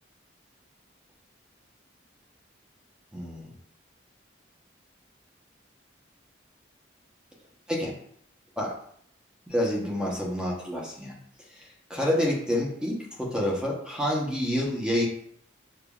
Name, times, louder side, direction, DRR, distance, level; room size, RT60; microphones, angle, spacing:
voice 1, 3.1-3.5 7.7-8.0 8.6-8.7 9.5-11.1 11.5-15.1, left 1 dB, 5° right, -3 dB, 0.9 m, -28 dB
6.9 x 2.7 x 2.3 m, 0.64 s
head